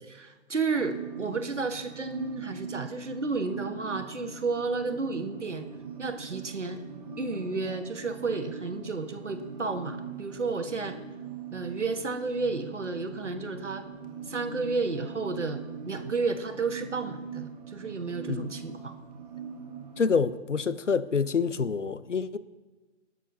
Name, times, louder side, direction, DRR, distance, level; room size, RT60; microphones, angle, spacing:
voice 1, 0.1-5.6 6.0-6.8 7.2-11.0 11.5-13.8 14.2-18.9, right 3 dB, 75° right, 1.4 m, -32 dB
sound 1, 0.7-20.1, right 7 dB, 35° right, 1.5 m, -41 dB
voice 2, 20.0-22.4, left 5 dB, 80° left, 0.7 m, -27 dB
18.5 x 6.7 x 3.8 m
figure-of-eight pair, 140°, 36 cm